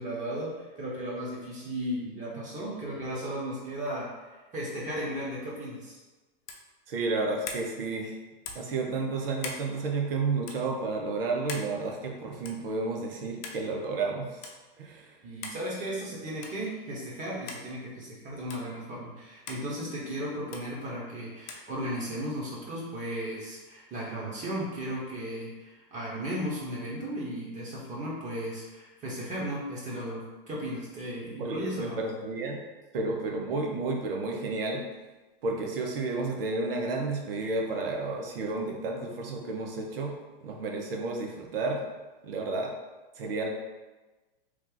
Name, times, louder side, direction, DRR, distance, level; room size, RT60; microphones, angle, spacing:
voice 1, 0.0-6.0 15.2-32.0, equal, 25° right, -4 dB, 1.1 m, -35 dB
sound 1, 6.4-6.7 7.4-7.7 8.4-8.7 9.4-9.6 10.4-10.6 11.5-11.7 12.4-12.7 13.4-13.6 14.4-14.5 15.4-15.6 16.4-16.6 17.5-17.6 18.5-18.6 19.5-19.6 20.5-20.6 21.5-21.7, left 4 dB, 55° left, 0.7 m, -40 dB
voice 2, 6.9-8.1 8.5-15.1 31.4-32.6 32.9-34.9 35.4-40.1 40.4-41.9 42.2-42.7 43.1-43.5, right 3 dB, 70° right, 1 dB, 0.8 m, -31 dB
3.1 x 2.4 x 3.8 m, 1.2 s
hypercardioid pair, 115°, 29 cm